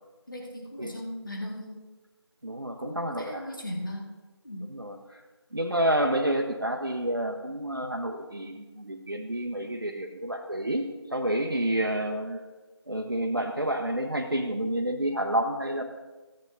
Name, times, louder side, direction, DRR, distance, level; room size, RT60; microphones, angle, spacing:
voice 1, 0.3-1.8 2.8-4.0 4.4-4.7, left 1 dB, 45° left, -1 dB, 1.7 m, -37 dB
voice 2, 2.4-3.5 4.7-5.2 5.5-12.4 12.9-15.8, right 1 dB, 55° right, 1 dB, 0.8 m, -29 dB
15.0 x 9.4 x 2.6 m, 1.2 s
figure-of-eight pair, 175°, 15 cm